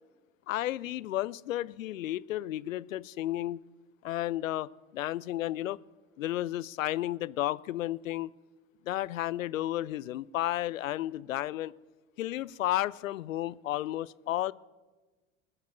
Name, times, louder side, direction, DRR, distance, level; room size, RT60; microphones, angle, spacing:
voice 1, 0.5-3.7 4.0-5.8 6.2-8.3 8.9-11.7 12.2-14.5, left 14 dB, 75° left, 0.5 m, -32 dB
21.0 x 7.3 x 7.2 m
figure-of-eight pair, 80°, 40 cm